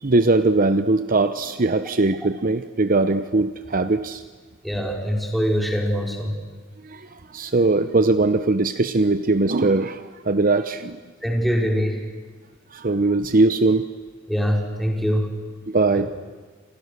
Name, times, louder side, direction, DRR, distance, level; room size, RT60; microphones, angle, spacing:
voice 1, 0.0-4.2 6.8-11.0 12.7-13.9 15.7-16.1, right 3 dB, 45° right, 11 dB, 0.9 m, -20 dB
voice 2, 4.6-6.4 11.2-12.1 14.3-15.4 15.9-16.1, equal, ahead, 0 dB, 5.0 m, -23 dB
29.5 x 27.0 x 6.7 m, 1.5 s
head